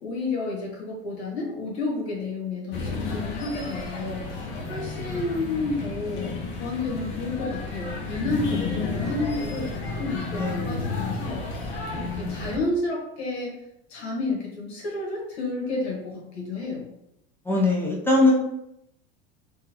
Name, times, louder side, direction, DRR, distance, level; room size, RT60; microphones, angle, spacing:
voice 1, 0.0-9.7 10.0-13.5 13.9-16.9, left 3 dB, 90° left, -2 dB, 1.3 m, -31 dB
sound 1, 2.7-12.6, left 3 dB, 70° left, 0.8 m, -32 dB
voice 2, 10.3-10.8 11.9-12.4 17.5-18.3, left 2 dB, 5° left, -4 dB, 0.4 m, -23 dB
3.7 x 2.3 x 2.8 m, 0.82 s
supercardioid pair, 115°, 32 cm